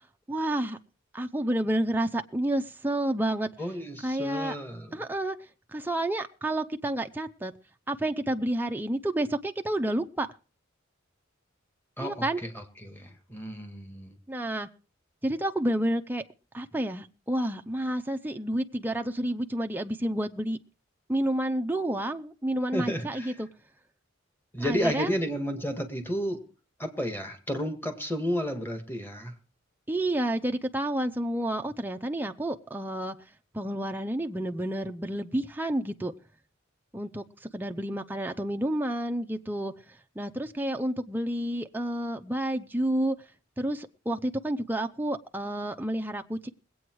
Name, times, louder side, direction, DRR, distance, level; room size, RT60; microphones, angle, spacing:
voice 1, 0.3-0.8 1.1-3.5 4.0-4.5 4.9-5.4 5.7-7.5 7.9-10.3 12.0-12.4 14.3-14.7 15.2-16.2 16.5-20.6 21.1-23.5 24.6-25.1 29.9-33.2 33.5-36.1 36.9-39.7 40.2-43.2 43.6-46.5, right 1 dB, 10° right, 5 dB, 0.6 m, -30 dB
voice 2, 3.6-5.0 12.0-14.2 22.7-23.4 24.5-26.4 26.8-29.3, equal, 10° left, 6 dB, 2.0 m, -32 dB
20.5 x 8.7 x 4.7 m, 0.36 s
head